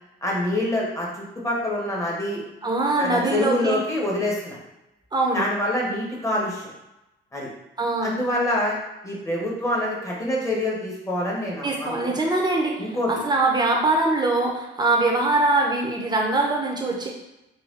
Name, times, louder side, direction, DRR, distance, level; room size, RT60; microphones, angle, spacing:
voice 1, 0.2-2.4 3.0-4.6 5.3-6.7 7.3-7.5 8.0-8.8 9.0-12.1 12.8-13.1, left 1 dB, 15° left, -3 dB, 1.4 m, -26 dB
voice 2, 2.6-3.8 5.1-5.5 7.8-8.1 11.6-17.1, right 2 dB, 20° right, -1 dB, 1.0 m, -22 dB
4.2 x 2.2 x 4.0 m, 0.94 s
cardioid pair, 90°, 20 cm